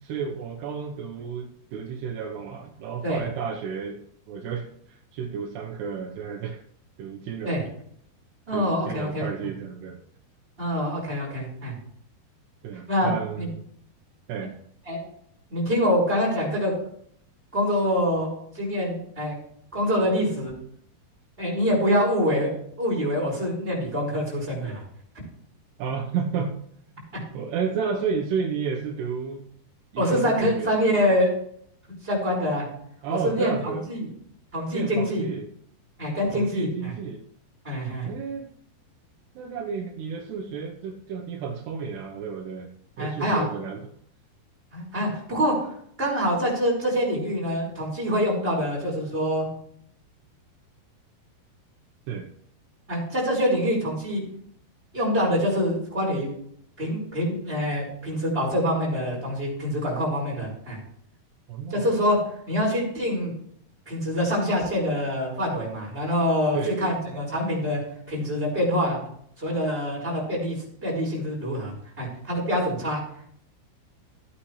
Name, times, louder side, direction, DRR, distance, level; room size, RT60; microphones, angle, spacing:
voice 1, 0.0-4.0 4.3-6.6 7.0-7.6 8.5-10.0 12.6-13.6 14.3-14.6 25.8-26.6 26.9-27.0 27.3-29.5 29.9-30.8 33.0-33.9 34.7-35.5 36.3-37.2 38.0-38.5 39.3-42.7 43.0-43.9 52.1-52.3 61.5-61.9 66.5-67.2, right 6 dB, 85° right, -1 dB, 3.2 m, -32 dB
voice 2, 8.5-9.3 10.6-11.7 12.9-13.1 13.4-13.5 14.9-15.0 15.5-16.7 17.5-19.4 19.7-20.5 21.4-22.5 22.8-24.8 30.0-31.3 32.0-32.7 33.1-34.1 34.5-35.3 36.0-36.7 37.6-38.1 43.0-43.4 44.7-45.5 46.0-49.5 52.9-54.2 54.9-56.3 56.8-60.8 61.7-62.2 62.5-63.3 63.9-67.8 68.1-69.0 69.4-73.0, equal, 15° right, -4 dB, 5.3 m, -25 dB
16.0 x 8.8 x 3.3 m, 0.66 s
omnidirectional pair, 4.6 m